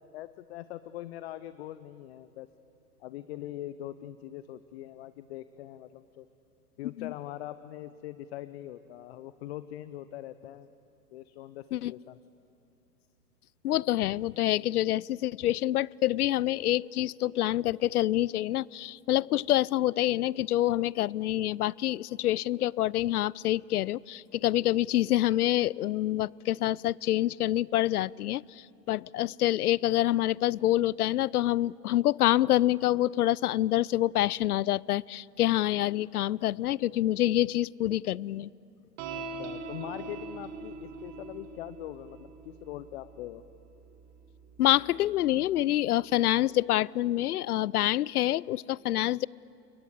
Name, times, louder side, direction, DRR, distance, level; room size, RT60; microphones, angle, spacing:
voice 1, 0.0-2.5 3.0-6.3 6.8-10.7 11.1-12.2 39.1-43.4, left 13 dB, 40° left, 14 dB, 0.8 m, -42 dB
voice 2, 13.6-38.5 44.6-49.3, left 14 dB, 65° left, 26 dB, 0.5 m, -27 dB
sound 1, 39.0-45.6, right 4 dB, 40° right, 2.2 m, -43 dB
29.0 x 22.5 x 8.2 m, 2.7 s
figure-of-eight pair, 110°, 49 cm